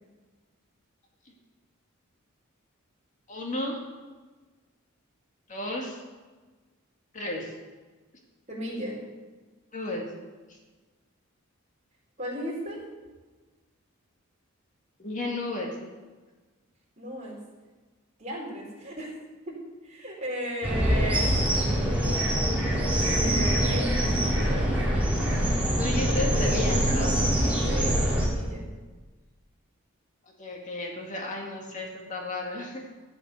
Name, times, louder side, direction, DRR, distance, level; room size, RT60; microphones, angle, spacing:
voice 1, 3.3-3.8 5.5-6.0 7.1-7.6 9.7-10.1 10.5-10.6 15.0-15.8 25.8-27.1 30.4-32.9, left 2 dB, 35° left, 0 dB, 2.1 m, -33 dB
voice 2, 8.5-9.0 12.2-12.8 17.0-17.4 18.2-19.1 19.5-19.6 19.8-21.6 23.0-24.7 27.7-28.7, right 1 dB, 35° right, -3 dB, 4.5 m, -35 dB
sound 1, 20.6-28.3, equal, 5° right, 3.8 m, -24 dB
14.0 x 8.1 x 8.2 m, 1.3 s
head